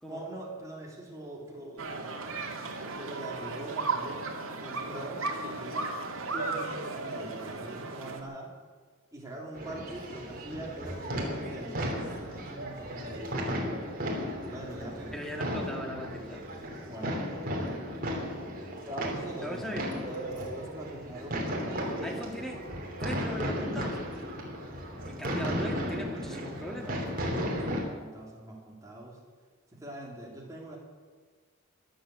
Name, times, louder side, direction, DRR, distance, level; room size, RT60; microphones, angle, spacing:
voice 1, 0.1-2.1 2.8-4.3 4.6-5.9 6.3-8.5 9.1-11.9 12.3-13.2 14.4-15.2 16.9-17.3 18.8-22.2 27.3-29.2 29.7-30.8, right 1 dB, 15° right, -3 dB, 3.4 m, -42 dB
sound 1, 1.8-8.2, right 3 dB, 75° right, 2.2 m, -35 dB
sound 2, 9.5-27.8, equal, 40° right, 3.2 m, -35 dB
voice 2, 15.1-16.4 19.4-19.9 22.0-22.6 23.0-24.0 24.7-27.6, equal, ahead, 1 dB, 2.1 m, -40 dB
23.5 x 7.9 x 7.9 m, 1.5 s
head